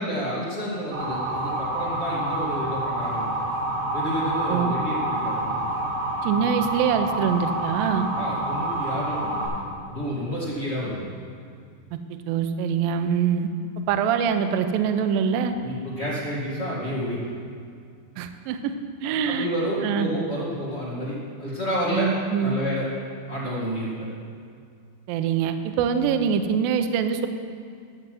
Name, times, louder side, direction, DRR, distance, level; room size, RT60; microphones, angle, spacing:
voice 1, 0.0-3.4 3.9-5.7 8.1-11.0 15.6-17.2 19.0-22.1 22.4-22.8 23.3-24.1, equal, 30° left, -8 dB, 1.3 m, -30 dB
Motor vehicle (road) / Siren, 0.9-9.5, right 1 dB, 70° right, 5.1 m, -28 dB
voice 2, 6.2-8.1 11.9-12.0 12.3-13.5 13.9-15.5 18.2-18.7 19.0-19.5 19.8-20.1 21.9-22.5 25.1-27.3, right 7 dB, 85° right, 7 dB, 2.1 m, -24 dB
11.5 x 6.8 x 7.7 m, 2.3 s
omnidirectional pair, 4.9 m